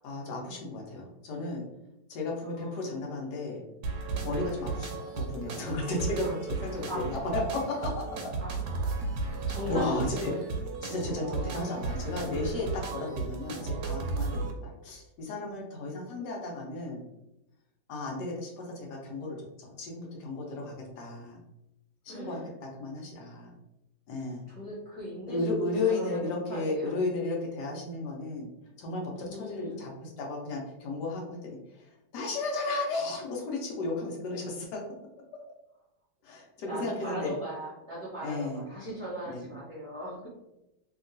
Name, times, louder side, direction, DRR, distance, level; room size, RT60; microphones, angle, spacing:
voice 1, 0.0-1.7 2.1-3.6 4.2-8.0 9.7-10.6 10.8-17.0 17.9-21.4 22.0-23.5 24.1-24.5 25.3-28.5 28.8-34.8 36.2-37.3 38.2-38.6 39.3-39.5, left 2 dB, 70° left, -1 dB, 1.3 m, -34 dB
voice 2, 2.4-2.8 6.2-6.3 6.9-7.0 8.4-9.2 9.5-10.4 22.1-22.4 24.5-25.6 25.8-26.9 29.1-29.8 36.7-40.3, right 1 dB, 25° right, -9 dB, 0.8 m, -39 dB
sound 1, 3.8-14.5, right 3 dB, 75° right, 1.1 m, -34 dB
2.9 x 2.8 x 2.6 m, 0.93 s
omnidirectional pair, 1.9 m